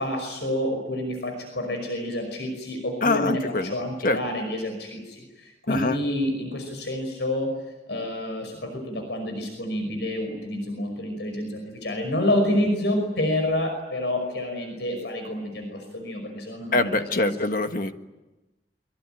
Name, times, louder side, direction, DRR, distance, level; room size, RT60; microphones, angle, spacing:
voice 1, 0.0-5.0 5.7-7.5 7.9-15.7 15.9-17.4, left 1 dB, 75° left, 4 dB, 5.6 m, -28 dB
voice 2, 3.0-3.8 4.0-4.2 5.7-6.0 16.7-17.9, left 2 dB, 50° left, 7 dB, 1.5 m, -24 dB
24.0 x 23.0 x 9.2 m, 1.1 s
head